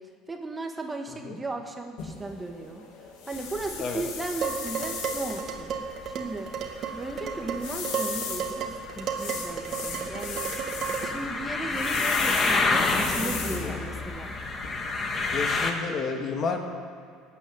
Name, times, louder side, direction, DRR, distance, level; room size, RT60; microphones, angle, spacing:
voice 1, 0.3-2.9 3.3-5.7 6.0-6.5 7.0-10.6 11.0-14.3, right 2 dB, 15° right, 4 dB, 1.5 m, -36 dB
voice 2, 1.1-1.4 3.8-4.0 13.5-13.8 15.3-16.7, left 4 dB, 45° left, 3 dB, 2.1 m, -31 dB
sound 1, 2.0-15.0, left 6 dB, 75° left, 2.8 m, -38 dB
sound 2, 3.3-15.7, left 3 dB, 30° left, 1.8 m, -29 dB
Dishes pots and pans, 4.4-11.3, right 6 dB, 50° right, 1.9 m, -33 dB
15.0 x 8.9 x 9.4 m, 2.3 s
supercardioid pair, 110°, 0 cm